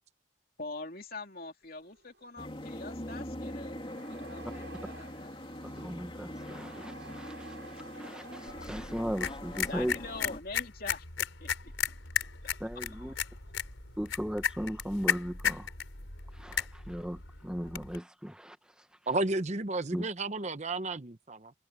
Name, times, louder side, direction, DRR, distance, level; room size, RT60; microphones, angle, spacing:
voice 1, 0.6-3.8 4.1-5.3 9.7-11.0 11.4-12.0, left 3 dB, 45° left, 2.9 m, -43 dB
sound 1, 1.6-11.1 12.1-12.6 12.8-14.5, right 4 dB, 65° right, 6.2 m, -55 dB
sound 2, 2.4-10.4, left 1 dB, 25° left, 2.7 m, -42 dB
voice 2, 5.6-7.6 8.0-10.0 12.6-13.1 14.0-15.7 16.3-18.6 19.9-20.1, equal, 5° right, 0.9 m, -37 dB
sound 3, 8.5-18.0, left 8 dB, 80° left, 4.4 m, -35 dB
voice 3, 19.1-21.5, right 2 dB, 35° right, 0.9 m, -32 dB
open air
head